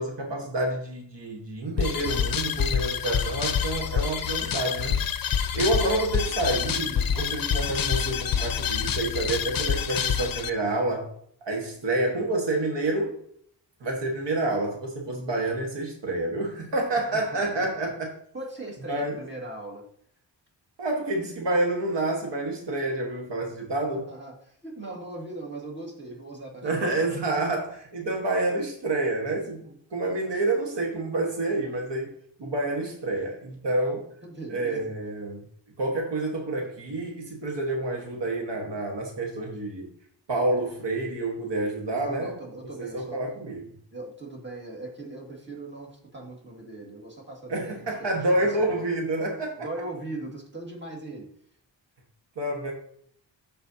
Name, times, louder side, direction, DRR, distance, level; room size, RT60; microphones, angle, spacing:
voice 1, 0.0-5.0 5.5-11.1 11.4-13.2 13.8-18.1 18.9-19.2 20.8-24.0 26.6-32.1 32.4-34.1 34.5-35.4 35.8-39.9 40.3-42.3 42.8-43.6 47.5-49.5 52.4-52.7, right 2 dB, 70° right, 0 dB, 1.5 m, -28 dB
sound 1, 1.8-10.5, left 8 dB, 50° left, 0.6 m, -27 dB
voice 2, 17.1-17.7 18.3-19.8 23.8-27.2 33.7-33.8 34.2-34.9 41.8-43.2 43.9-48.7 49.6-51.3, right 2 dB, 25° right, -1 dB, 2.0 m, -39 dB
13.0 x 4.4 x 2.8 m, 0.65 s
wide cardioid pair, 120°, 44 cm